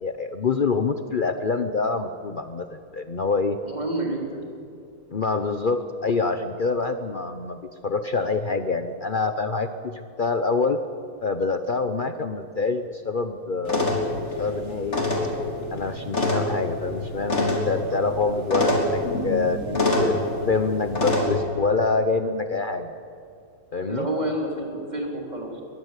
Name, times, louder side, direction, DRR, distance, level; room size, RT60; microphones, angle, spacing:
voice 1, 0.0-3.6 5.1-10.8 11.2-14.0 14.4-15.0 15.7-20.1 20.5-22.9 23.7-24.1, left 4 dB, 70° left, 8 dB, 0.5 m, -26 dB
voice 2, 3.6-4.4 23.9-25.6, right 1 dB, 20° right, 0 dB, 3.9 m, -29 dB
sound 1, 13.6-21.2, left 2 dB, 35° left, 4.1 m, -26 dB
23.0 x 20.0 x 8.3 m, 2.5 s
omnidirectional pair, 2.2 m